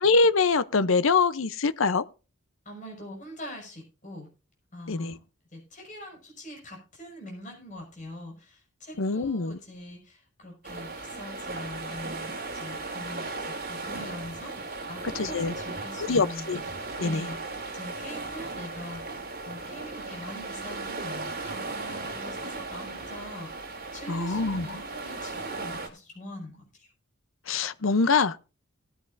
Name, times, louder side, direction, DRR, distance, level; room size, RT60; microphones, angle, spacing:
voice 1, 0.0-2.0 4.9-5.2 9.0-9.6 15.2-15.5 16.1-16.6 17.0-17.3 24.1-24.7 27.5-28.4, left 4 dB, 75° left, 0.7 m, -24 dB
voice 2, 2.7-4.3 4.7-5.2 5.5-13.2 13.6-16.6 17.0-26.9, left 1 dB, 40° left, 5.6 m, -43 dB
sound 1, 10.6-25.9, right 3 dB, 45° right, 2.9 m, -37 dB
18.0 x 9.6 x 2.6 m
head